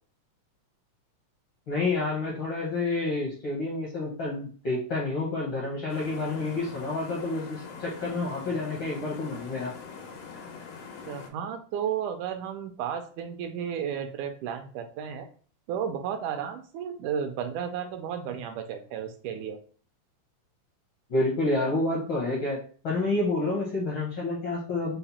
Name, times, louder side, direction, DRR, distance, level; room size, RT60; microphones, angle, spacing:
voice 1, 1.7-9.7 21.1-25.0, left 2 dB, 65° left, -5 dB, 1.2 m, -29 dB
sound 1, 5.9-11.3, left 5 dB, 90° left, 2.5 m, -43 dB
voice 2, 11.1-15.3 15.7-19.6, right 8 dB, 80° right, 6 dB, 1.9 m, -33 dB
5.6 x 2.1 x 4.1 m, 0.42 s
omnidirectional pair, 3.7 m